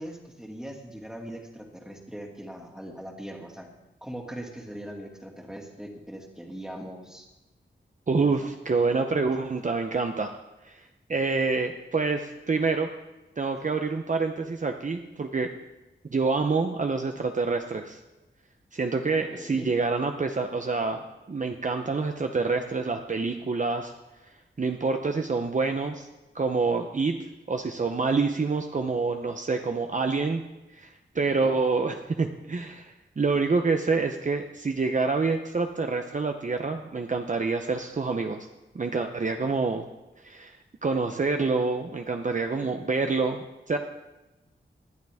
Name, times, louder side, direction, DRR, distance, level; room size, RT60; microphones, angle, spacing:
voice 1, 0.0-3.7 4.0-7.3 8.2-8.3 19.3-19.7 31.2-31.6, equal, 5° right, 1 dB, 2.2 m, -40 dB
voice 2, 8.1-10.3 10.6-12.9 13.4-15.5 16.1-18.0 18.7-21.0 21.3-23.9 24.6-26.1 26.3-27.2 27.5-30.4 30.7-38.5 38.7-39.9 40.2-43.8, right 4 dB, 40° right, 5 dB, 0.8 m, -27 dB
20.0 x 12.0 x 3.6 m, 1.0 s
wide cardioid pair, 125°, 20 cm